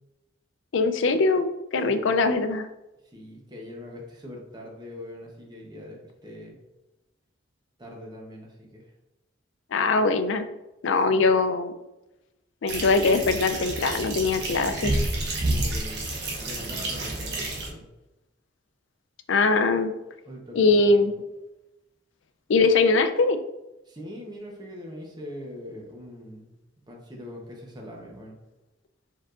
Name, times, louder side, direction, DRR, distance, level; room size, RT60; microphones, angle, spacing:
voice 1, 0.7-1.5 1.7-2.7 9.7-10.5 10.8-11.7 12.6-15.0 19.3-19.9 20.6-21.1 22.5-23.4, left 3 dB, 80° left, 9 dB, 0.4 m, -21 dB
voice 2, 1.8-2.2 3.0-6.0 6.2-6.6 7.8-8.8 11.1-11.2 15.4-17.8 20.2-21.0 23.9-26.5 26.9-28.3, left 1 dB, 20° right, 0 dB, 0.9 m, -42 dB
sound 1, 12.7-17.7, right 2 dB, 60° right, 1.0 m, -29 dB
4.6 x 4.5 x 2.5 m, 0.96 s
head